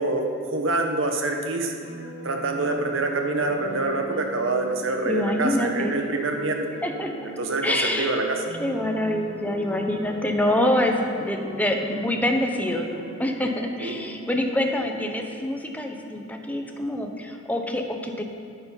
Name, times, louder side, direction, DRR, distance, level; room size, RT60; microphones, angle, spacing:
voice 1, 0.0-1.7 2.2-6.6 7.2-8.4 13.8-14.0, right 2 dB, 65° right, 3 dB, 1.2 m, -26 dB
sound 1, 1.8-15.1, right 2 dB, 40° right, 2.7 m, -39 dB
voice 2, 5.0-5.9 6.8-7.1 7.6-8.1 8.6-18.2, left 1 dB, 10° left, 3 dB, 0.9 m, -26 dB
9.6 x 9.0 x 5.7 m, 2.3 s
head